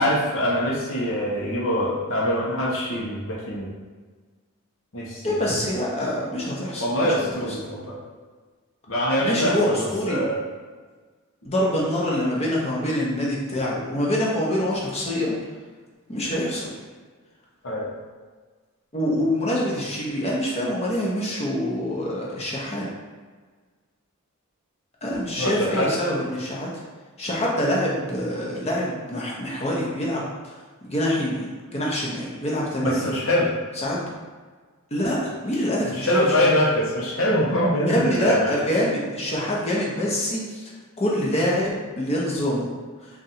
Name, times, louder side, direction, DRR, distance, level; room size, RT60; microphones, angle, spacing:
voice 1, 0.0-3.7 4.9-5.3 6.8-8.0 8.9-10.3 17.6-17.9 25.4-25.9 32.8-33.5 35.9-38.5, equal, 65° left, -5 dB, 0.9 m, -23 dB
voice 2, 5.2-6.8 9.2-10.2 11.4-15.4 16.1-16.7 18.9-22.9 25.0-26.7 27.2-30.2 30.8-33.1 33.8-34.1 34.9-36.5 37.9-40.7 41.0-42.7, left 1 dB, 30° left, -4 dB, 0.9 m, -25 dB
3.8 x 2.6 x 4.3 m, 1.4 s
head